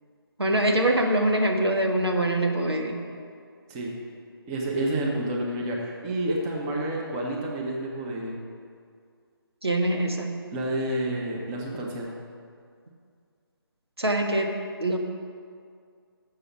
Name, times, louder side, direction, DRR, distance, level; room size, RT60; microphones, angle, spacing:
voice 1, 0.4-3.0 9.6-10.4 14.0-14.5 14.8-15.0, right 1 dB, 90° right, 3 dB, 1.3 m, -24 dB
voice 2, 4.5-8.4 10.5-12.1, right 1 dB, 15° right, -2 dB, 1.0 m, -29 dB
7.0 x 6.9 x 7.3 m, 2.2 s
figure-of-eight pair, 155°, 13 cm